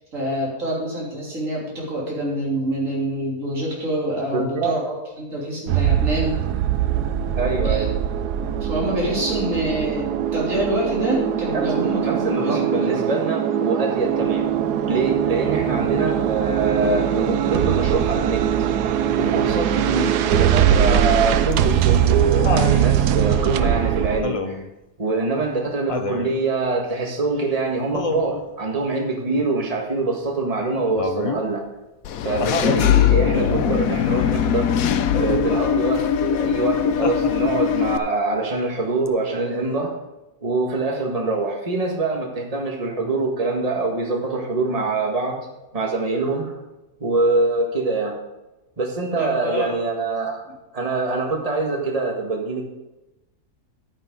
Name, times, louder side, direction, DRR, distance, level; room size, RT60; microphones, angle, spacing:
voice 1, 0.1-6.4 7.6-7.8 8.6-10.1 10.3-13.4 49.2-49.7, right 1 dB, 55° right, -4 dB, 3.6 m, -26 dB
voice 2, 4.3-4.8 7.4-7.9 11.5-14.5 14.9-18.4 19.2-24.6 25.0-31.6 32.2-34.7 35.1-39.9 40.4-45.5 45.7-46.6 47.0-48.2 48.8-50.4 50.7-52.7, right 3 dB, 25° right, 1 dB, 1.7 m, -24 dB
sound 1, 5.7-24.2, right 10 dB, 80° right, 1.2 m, -21 dB
Laughter, 21.5-22.8 24.2-24.7 25.9-26.3 27.9-28.5 31.0-31.5 32.4-32.8 35.1-35.6 37.0-37.7 39.1-39.2, left 4 dB, 50° left, 0.4 m, -28 dB
Engine / Mechanisms, 32.0-38.0, left 8 dB, 70° left, 1.0 m, -20 dB
11.0 x 10.0 x 3.8 m, 1.0 s
omnidirectional pair, 1.7 m